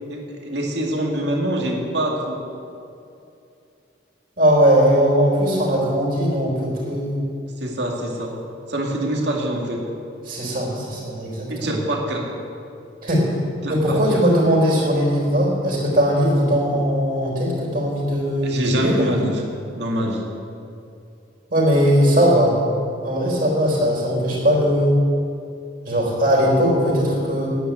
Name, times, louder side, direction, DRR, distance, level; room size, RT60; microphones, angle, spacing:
voice 1, 0.1-2.4 7.6-8.3 8.7-9.8 11.5-12.3 13.6-14.2 18.4-19.4 19.8-20.2, right 1 dB, 65° right, -1 dB, 2.3 m, -25 dB
voice 2, 4.4-7.2 10.3-11.8 13.0-13.2 13.7-19.1 21.5-22.5 23.0-25.0 25.9-27.5, equal, 45° right, -3 dB, 4.0 m, -19 dB
9.7 x 9.3 x 9.2 m, 2.6 s
head